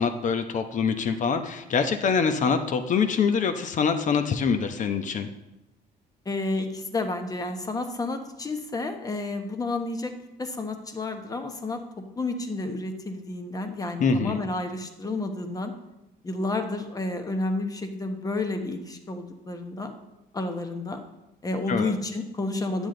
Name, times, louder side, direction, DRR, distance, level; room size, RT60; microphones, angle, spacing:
voice 1, 0.0-5.3 14.0-14.4 21.7-21.9, left 5 dB, 50° left, 8 dB, 1.0 m, -24 dB
voice 2, 6.2-10.1 10.4-11.8 12.2-15.7 16.2-19.9 20.3-21.0 21.4-22.9, left 2 dB, 20° left, 6 dB, 1.2 m, -30 dB
10.0 x 8.2 x 3.9 m, 0.95 s
cardioid pair, 110°, 17 cm